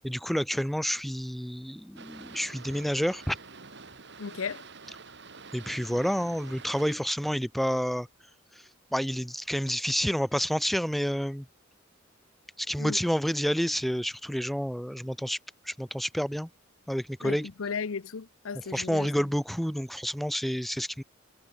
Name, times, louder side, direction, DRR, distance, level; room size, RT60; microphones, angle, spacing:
voice 1, 0.0-3.4 5.5-8.1 8.6-11.5 12.6-15.4 15.7-16.5 16.9-17.5 18.5-21.0, equal, ahead, 0.4 m, -29 dB
Boat Water vehicle, 2.0-7.0, right 4 dB, 55° right, 2.7 m, -47 dB
voice 2, 4.2-4.6 12.8-13.0 17.2-19.1, left 5 dB, 80° left, 0.6 m, -35 dB
head